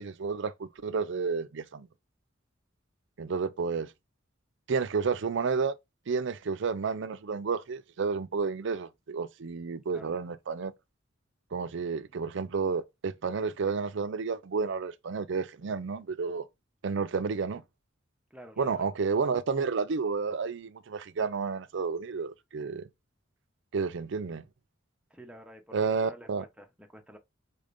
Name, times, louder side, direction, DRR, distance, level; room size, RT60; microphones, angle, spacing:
voice 1, 0.0-1.9 3.2-3.9 4.7-5.7 6.1-10.7 11.5-16.5 16.8-17.6 18.6-22.9 23.7-24.4 25.7-26.4, right 5 dB, 65° right, 0.5 m, -31 dB
voice 2, 18.3-18.8 25.1-27.2, right 1 dB, 5° right, 0.8 m, -50 dB
5.1 x 4.1 x 2.6 m
head